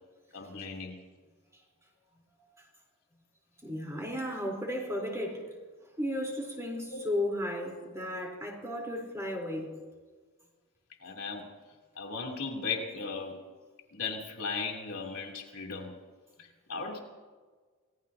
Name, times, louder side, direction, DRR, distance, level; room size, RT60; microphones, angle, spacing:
voice 1, 0.3-1.1 6.9-7.0 11.0-11.5 11.9-13.4 13.9-15.9 16.4-17.0, left 4 dB, 80° left, 0 dB, 3.1 m, -37 dB
voice 2, 3.6-5.5 6.0-9.8, left 1 dB, 15° right, -1 dB, 3.9 m, -34 dB
30.0 x 17.0 x 2.9 m, 1.4 s
head